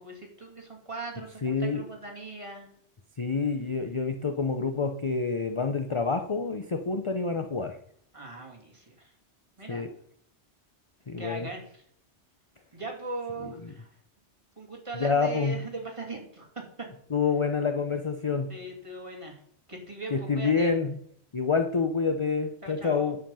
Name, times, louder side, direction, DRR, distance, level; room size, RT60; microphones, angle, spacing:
voice 1, 0.0-2.7 8.1-9.1 9.6-9.9 11.2-11.8 12.7-13.9 14.6-16.5 18.5-19.4 19.7-20.7 22.6-23.2, right 2 dB, 25° right, 0 dB, 2.8 m, -39 dB
voice 2, 1.4-1.8 3.2-7.8 9.7-9.9 11.1-11.5 14.9-15.6 17.1-18.5 20.1-21.0 21.3-23.2, left 5 dB, 30° left, 7 dB, 0.7 m, -27 dB
10.5 x 7.3 x 5.6 m, 0.65 s
omnidirectional pair, 1.2 m